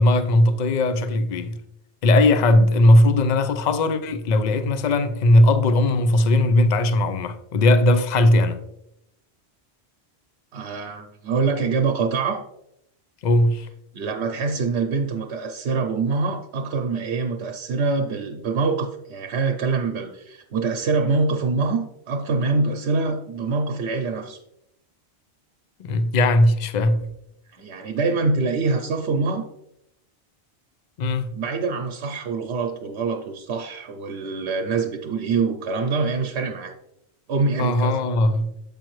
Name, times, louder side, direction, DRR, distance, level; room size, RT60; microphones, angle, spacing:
voice 1, 0.0-1.6 2.0-8.6 13.2-13.7 25.8-27.1 31.0-31.3 37.6-38.5, left 1 dB, 50° left, 0.6 m, -18 dB
voice 2, 10.5-12.4 13.9-24.4 27.5-29.5 31.3-36.7 37.3-38.0, right 4 dB, 80° right, 0.9 m, -25 dB
7.5 x 5.2 x 3.1 m
omnidirectional pair, 1.1 m